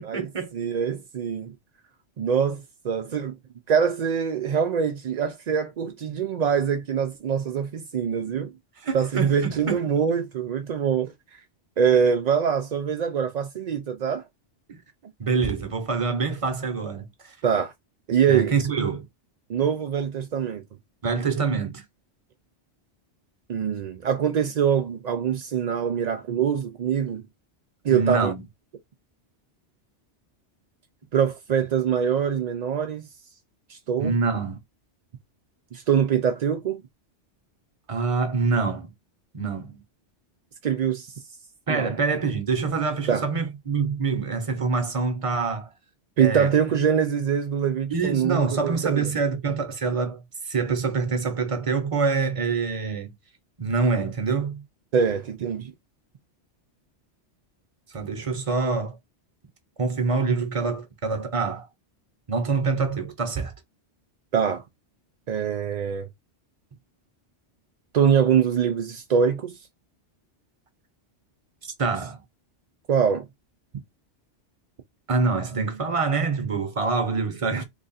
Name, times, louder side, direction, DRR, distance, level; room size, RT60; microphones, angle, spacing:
voice 1, 0.0-0.5 8.8-9.8 14.7-14.8 15.2-17.3 18.3-19.1 21.0-21.8 27.9-28.4 34.0-34.6 37.9-38.9 39.3-39.8 41.7-45.7 46.2-46.5 47.9-53.1 53.6-54.6 57.9-59.0 59.8-61.7 62.3-63.5 71.6-72.2 75.1-77.6, right 4 dB, 35° right, 0.8 m, -26 dB
voice 2, 0.5-1.5 2.2-3.3 3.7-8.5 8.9-11.1 11.8-14.2 17.4-17.7 18.1-18.5 19.5-20.6 23.5-27.2 27.8-28.3 31.1-33.1 33.7-34.1 35.7-36.8 40.6-41.1 41.7-41.9 43.1-43.2 46.2-49.1 54.9-55.7 64.3-64.6 65.3-66.1 67.9-69.6 72.9-73.3, right 7 dB, 60° right, 0.4 m, -24 dB
3.1 x 2.5 x 4.0 m
omnidirectional pair, 1.2 m